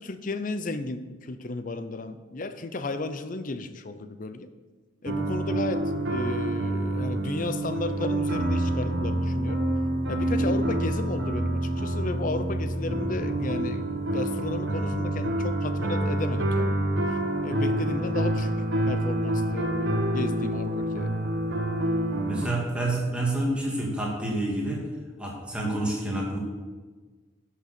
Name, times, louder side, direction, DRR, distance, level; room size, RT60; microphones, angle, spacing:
voice 1, 0.0-4.5 5.0-9.6 10.1-21.2, left 2 dB, 40° left, 11 dB, 0.6 m, -34 dB
sound 1, 5.1-22.5, right 1 dB, 55° right, 1.7 m, -27 dB
voice 2, 22.3-24.9 25.2-26.4, right 1 dB, 5° right, -3 dB, 2.2 m, -28 dB
10.5 x 6.5 x 6.7 m, 1.4 s
head